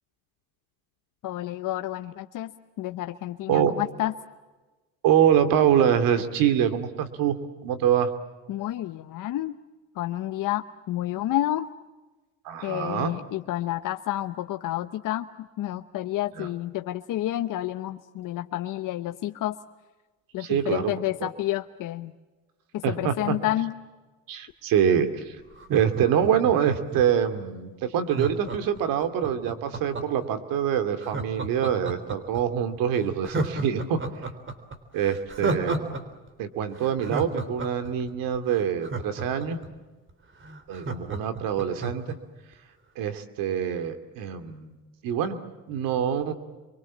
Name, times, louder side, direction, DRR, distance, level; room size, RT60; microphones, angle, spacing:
voice 1, 1.2-2.5 2.8-4.1 8.5-9.6 10.0-11.7 12.6-15.3 15.6-19.5 20.3-22.1 22.7-23.7, left 14 dB, 70° left, 8 dB, 1.0 m, -30 dB
voice 2, 5.0-8.1 12.4-13.1 16.3-16.5 20.4-21.3 22.8-23.4 24.3-25.4 25.7-34.0 34.9-36.0 36.4-39.6 40.7-42.2 43.0-44.7 45.0-45.4 45.7-46.3, right 9 dB, 85° right, 10 dB, 2.6 m, -25 dB
Laughter, 25.5-27.2 28.1-30.3 31.0-32.4 32.8-32.9 33.2-36.0 36.3-36.4 36.8-39.7 40.1-40.2 40.4-42.1 42.5-42.6, right 3 dB, 35° right, 3.6 m, -32 dB
28.5 x 24.0 x 7.4 m, 1.2 s
cardioid pair, 85°, 33 cm